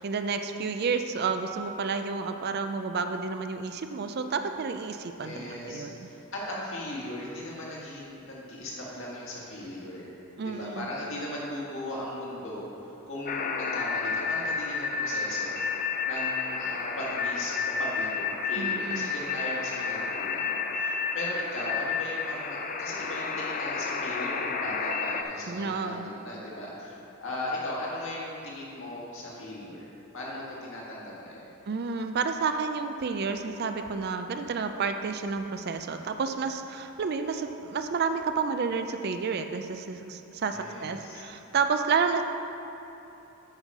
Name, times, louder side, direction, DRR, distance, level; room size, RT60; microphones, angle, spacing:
voice 1, 0.0-6.1 10.4-10.9 18.6-19.1 25.5-26.1 31.7-42.2, right 5 dB, 45° right, 7 dB, 0.4 m, -30 dB
voice 2, 5.2-10.1 10.4-31.5 40.5-41.2, left 1 dB, 60° left, -5 dB, 1.9 m, -38 dB
sound 1, 13.3-25.2, left 5 dB, 35° left, 0.4 m, -31 dB
8.8 x 5.6 x 4.8 m, 3.0 s
head